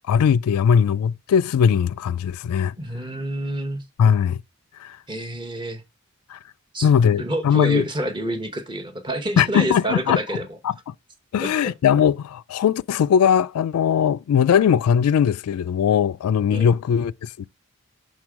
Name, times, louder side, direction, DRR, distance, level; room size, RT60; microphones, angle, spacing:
voice 1, 0.1-2.7 4.0-4.4 4.8-5.0 6.3-6.4 6.8-7.8 9.4-10.2 10.6-10.9 11.3-17.5, left 8 dB, 85° left, 0.3 m, -19 dB
voice 2, 2.8-3.8 5.1-5.8 6.7-10.6 11.4-11.7 16.4-16.7, right 1 dB, 20° right, 0.8 m, -28 dB
6.2 x 3.7 x 4.8 m
head